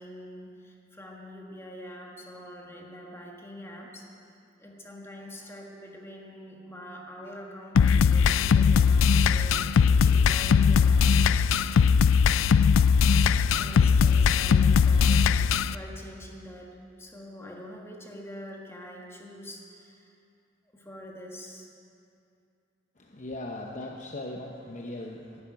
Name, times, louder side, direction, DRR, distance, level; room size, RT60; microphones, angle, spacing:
voice 1, 0.0-4.1 4.6-9.6 10.0-11.3 13.6-15.4 15.7-20.1 20.7-21.7, equal, 15° left, -1 dB, 1.5 m, -45 dB
sound 1, 7.7-15.7, left 6 dB, 85° left, 0.4 m, -20 dB
voice 2, 23.0-25.4, left 1 dB, 40° left, 0 dB, 0.9 m, -38 dB
12.5 x 10.5 x 9.5 m, 2.6 s
head